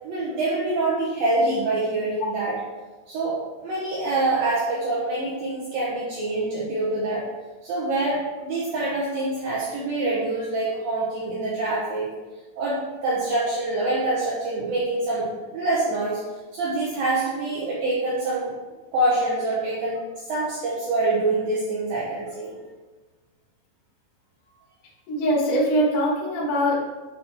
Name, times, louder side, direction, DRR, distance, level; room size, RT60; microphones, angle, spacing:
voice 1, 0.0-2.6 3.1-7.2 7.6-12.1 12.6-16.2 16.5-18.5 18.9-20.0 20.3-22.6, right 2 dB, 80° right, -7 dB, 2.0 m, -25 dB
voice 2, 25.1-26.8, equal, 60° left, -6 dB, 2.4 m, -22 dB
8.4 x 4.3 x 3.5 m, 1.2 s
omnidirectional pair, 5.6 m